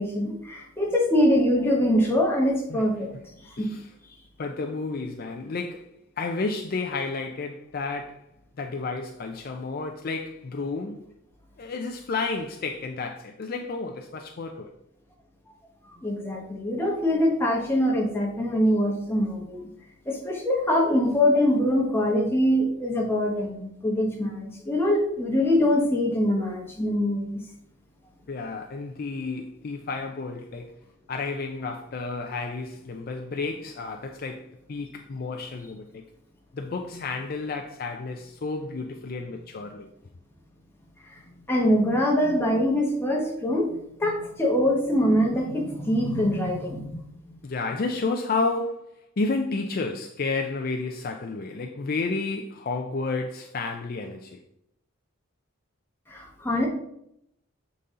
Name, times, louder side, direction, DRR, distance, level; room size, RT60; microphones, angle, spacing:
voice 1, 0.0-3.1 3.5-3.7 16.0-19.7 20.1-27.4 41.5-47.0 56.1-56.7, left 1 dB, 10° left, 1.2 m, -23 dB
voice 2, 3.6-3.9 4.4-5.9 6.2-8.3 8.6-11.0 11.6-14.7 28.3-30.8 31.1-36.0 36.5-39.9 47.4-54.4, left 3 dB, 45° left, 0.4 m, -31 dB
6.8 x 4.0 x 3.7 m
head